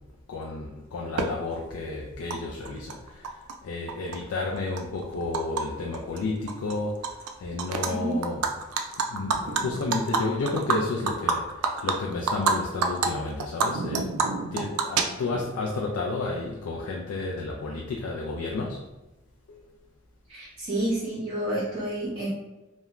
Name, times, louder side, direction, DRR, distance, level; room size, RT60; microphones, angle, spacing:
voice 1, 0.3-14.1 14.5-18.9 19.5-19.7, left 3 dB, 75° left, -1 dB, 0.3 m, -32 dB
Animal, 1.2-1.3 2.3-2.4 2.7-3.5 3.9-5.6 5.9-6.2 6.5-7.3 7.6-7.9 8.2-12.5 12.8-13.1 13.4-15.5, right 5 dB, 85° right, 0.3 m, -27 dB
voice 2, 7.9-8.2 20.3-22.3, right 1 dB, 30° right, -8 dB, 0.6 m, -29 dB
3.0 x 2.1 x 2.4 m, 1.1 s
head